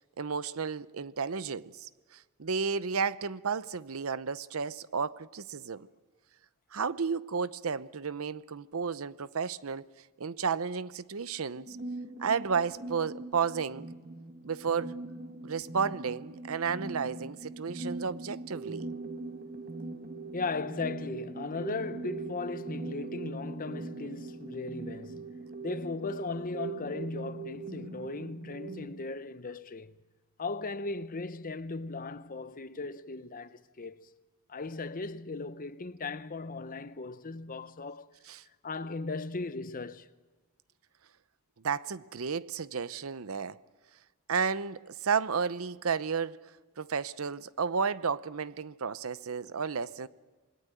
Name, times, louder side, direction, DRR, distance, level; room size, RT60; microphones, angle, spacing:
voice 1, 0.2-5.9 6.7-9.9 10.2-11.8 12.2-13.9 14.4-14.9 15.4-18.9 38.3-38.4 41.6-43.6 44.3-46.5 46.8-50.1, right 5 dB, 70° right, 0.7 m, -32 dB
sound 1, 11.5-28.9, right 3 dB, 40° right, 1.5 m, -41 dB
voice 2, 20.3-25.3 25.6-30.0 30.4-34.1 34.5-38.1 38.6-40.1, left 3 dB, 40° left, 0.8 m, -37 dB
27.5 x 21.5 x 9.0 m
head